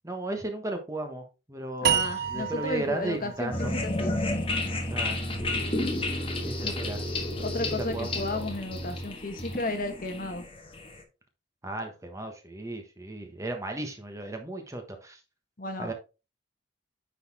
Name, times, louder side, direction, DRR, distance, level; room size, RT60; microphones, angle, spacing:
voice 1, 0.0-3.7 4.9-5.7 6.4-8.5 11.6-15.2 15.8-15.9, right 2 dB, 15° right, 1.3 m, -36 dB
voice 2, 1.8-4.1 6.6-6.7 7.4-10.4 15.6-15.9, left 2 dB, 50° left, 1.3 m, -33 dB
sound 1, 1.8-5.0, right 8 dB, 55° right, 0.8 m, -31 dB
sound 2, 3.5-11.0, left 1 dB, 30° left, 1.4 m, -31 dB
9.8 x 4.2 x 3.6 m
head